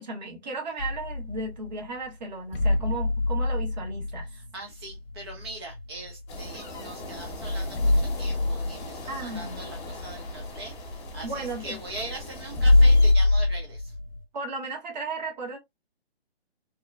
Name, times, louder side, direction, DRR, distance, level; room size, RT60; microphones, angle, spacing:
voice 1, 0.0-4.3 9.1-9.6 11.2-11.8 14.3-15.6, right 3 dB, 45° right, 1.0 m, -35 dB
sound 1, 0.8-1.7 2.5-6.5 7.0-7.1 7.3-14.2, left 2 dB, 60° left, 0.7 m, -25 dB
voice 2, 4.3-13.9, right 2 dB, 25° right, 0.4 m, -41 dB
sound 2, 6.3-13.1, left 1 dB, 25° left, 0.8 m, -41 dB
2.9 x 2.1 x 2.2 m
figure-of-eight pair, 145°, 32 cm